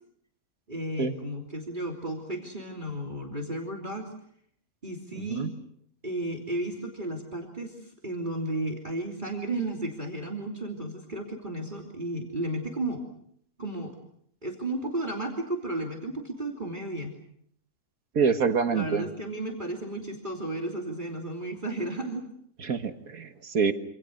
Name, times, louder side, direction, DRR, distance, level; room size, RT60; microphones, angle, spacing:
voice 1, 0.7-4.1 4.8-5.5 6.0-13.0 13.6-13.9 14.4-17.1 18.7-22.2, right 1 dB, 30° right, 0 dB, 3.3 m, -33 dB
voice 2, 5.1-5.5 18.2-19.1 22.6-23.7, right 6 dB, 65° right, 7 dB, 1.9 m, -26 dB
27.0 x 27.0 x 6.4 m, 0.68 s
omnidirectional pair, 1.6 m